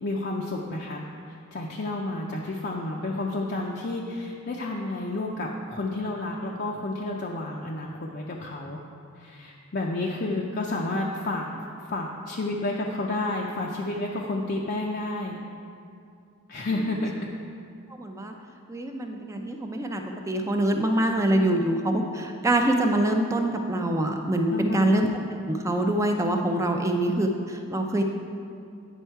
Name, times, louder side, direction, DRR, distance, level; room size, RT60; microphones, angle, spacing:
voice 1, 0.0-8.8 9.1-11.4 11.9-15.4 16.5-17.3 24.5-24.9, left 2 dB, 45° left, -2 dB, 0.5 m, -30 dB
voice 2, 17.9-18.3 18.7-25.1 25.5-28.0, right 1 dB, 15° right, 3 dB, 0.4 m, -25 dB
9.1 x 5.4 x 4.5 m, 2.5 s
head